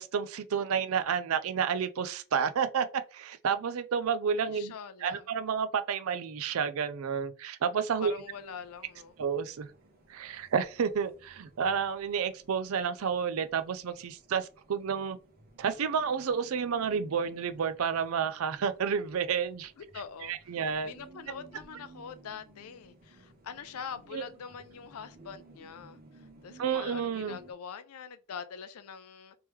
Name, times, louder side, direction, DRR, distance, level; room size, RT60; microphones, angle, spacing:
voice 1, 0.0-2.9 3.1-4.7 5.0-8.1 9.2-9.7 10.1-15.2 15.6-19.7 20.2-20.9 24.1-24.2 26.6-27.4, right 6 dB, 75° right, 0.4 m, -30 dB
voice 2, 4.4-5.2 8.0-9.1 19.8-20.3 20.8-29.4, left 6 dB, 85° left, 0.4 m, -44 dB
sound 1, 8.0-27.5, right 2 dB, 45° right, 0.9 m, -57 dB
3.5 x 3.0 x 3.1 m
head